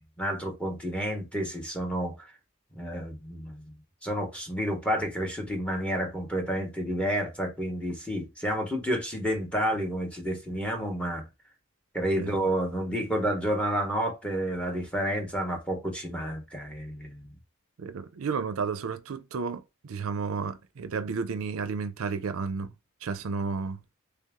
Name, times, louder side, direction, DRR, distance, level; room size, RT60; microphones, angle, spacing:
voice 1, 0.2-2.1 2.8-3.6 4.0-11.3 11.9-17.3, equal, 5° left, 1.1 m, -30 dB
voice 2, 17.8-22.7 23.0-23.8, right 5 dB, 70° right, 0.5 m, -32 dB
3.4 x 2.9 x 3.5 m
head